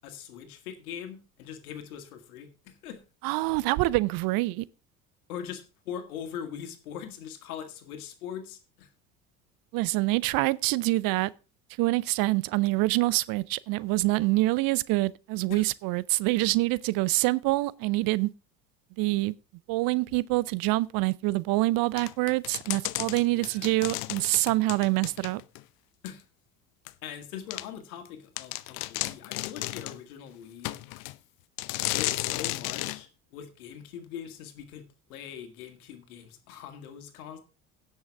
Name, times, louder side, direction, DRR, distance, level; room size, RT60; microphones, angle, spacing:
voice 1, 0.0-3.0 5.3-8.9 15.5-15.7 23.2-23.7 26.0-26.2 27.0-30.8 31.8-34.8 35.1-37.4, left 8 dB, 75° left, 2.0 m, -41 dB
voice 2, 3.2-4.6 9.7-11.3 11.8-18.3 19.0-19.4 19.7-25.4, right 20 dB, 50° right, 0.6 m, -26 dB
sound 1, 22.0-25.6 26.1-26.2 26.9-27.0 27.5-27.7 28.1-28.2 28.4-30.0 30.6-31.2 31.6-33.0, left 19 dB, 55° left, 0.7 m, -33 dB
16.5 x 6.4 x 3.4 m
figure-of-eight pair, 65°, 44 cm